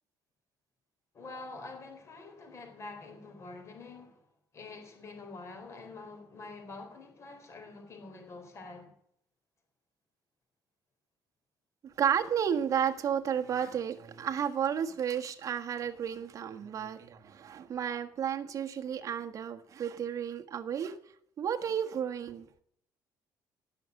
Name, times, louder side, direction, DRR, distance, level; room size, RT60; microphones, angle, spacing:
voice 1, 1.1-4.2 4.5-8.9, left 3 dB, 35° left, 4.3 m, -46 dB
voice 2, 11.8-21.0 21.4-22.5, right 8 dB, 45° right, 1.4 m, -32 dB
18.0 x 6.5 x 9.5 m
cardioid pair, 140°, 8 cm